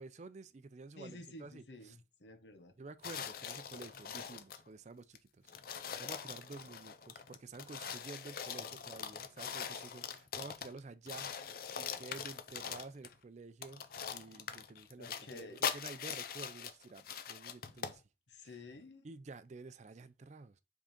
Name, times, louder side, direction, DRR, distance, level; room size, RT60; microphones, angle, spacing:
voice 1, 0.0-2.0 2.8-5.5 6.0-18.0 18.4-18.6 19.0-20.6, right 3 dB, 40° right, 0.4 m, -51 dB
voice 2, 1.0-2.7 15.0-15.6 18.3-19.1, left 2 dB, 70° left, 1.1 m, -51 dB
sound 1, 3.0-4.7 5.1-5.2 5.5-10.8 11.1-13.1 13.6-18.0, left 7 dB, 55° left, 0.6 m, -42 dB
5.0 x 3.8 x 5.1 m
head